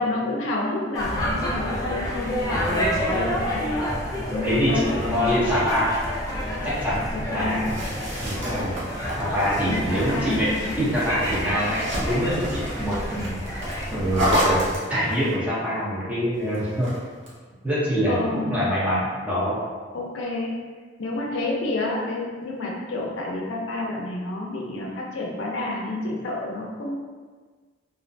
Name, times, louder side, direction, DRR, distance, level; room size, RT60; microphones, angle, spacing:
voice 1, 0.0-3.3 3.5-3.8 4.3-5.3 7.1-7.7 9.7-10.9 18.1-18.6 19.9-20.5 21.0-27.0, left 2 dB, 85° left, -2 dB, 0.4 m, -29 dB
sound 1, 0.9-14.8, equal, 20° left, 0.4 m, -29 dB
voice 2, 4.4-5.9 6.6-7.8 8.2-8.8 9.1-10.5 10.8-13.6 13.9-14.6 14.9-16.9 17.6-19.6, equal, 10° right, -9 dB, 0.7 m, -25 dB
sound 2, 7.5-15.3 16.5-17.4, equal, 80° right, 0.6 m, -31 dB
2.5 x 2.1 x 2.5 m, 1.5 s
head